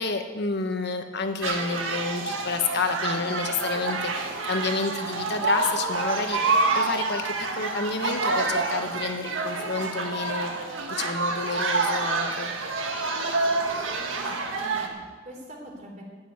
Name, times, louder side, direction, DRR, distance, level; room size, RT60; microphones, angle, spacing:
voice 1, 0.0-12.5, left 3 dB, 60° left, 6 dB, 1.3 m, -30 dB
sound 1, 1.4-14.9, right 3 dB, 85° right, 1.8 m, -28 dB
voice 2, 14.2-16.0, right 1 dB, 40° right, 0 dB, 3.6 m, -43 dB
12.5 x 8.1 x 9.1 m, 1.4 s
head